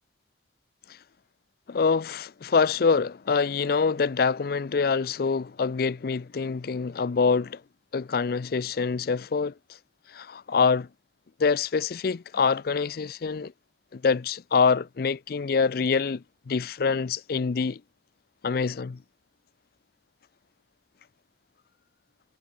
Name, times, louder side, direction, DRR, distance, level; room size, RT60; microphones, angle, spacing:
voice 1, 1.7-7.6 7.9-9.5 10.1-10.9 11.4-13.5 13.9-17.8 18.4-19.0, left 5 dB, 60° left, 0.5 m, -25 dB
head